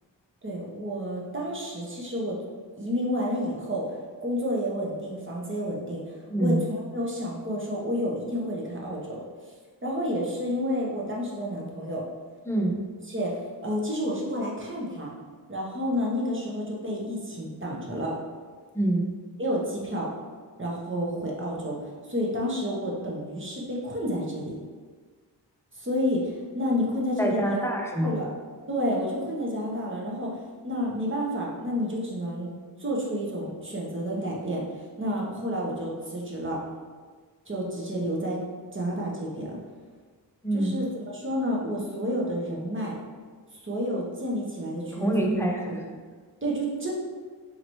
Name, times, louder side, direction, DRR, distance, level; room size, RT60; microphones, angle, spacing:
voice 1, 0.4-2.4 2.8-9.2 9.8-12.0 13.1-15.1 15.5-18.1 19.4-20.1 20.6-24.5 25.7-27.6 28.0-28.3 28.7-32.5 32.8-36.6 37.4-38.4 38.7-39.6 40.5-42.9 43.5-45.4 45.7-45.8 46.4-46.9, equal, 30° right, -3 dB, 1.0 m, -30 dB
voice 2, 12.5-12.8 18.7-19.1 27.2-28.1 40.4-40.7 44.9-45.8, right 1 dB, 5° left, -1 dB, 0.7 m, -25 dB
4.1 x 2.9 x 3.1 m, 1.5 s
cardioid pair, 45°, 42 cm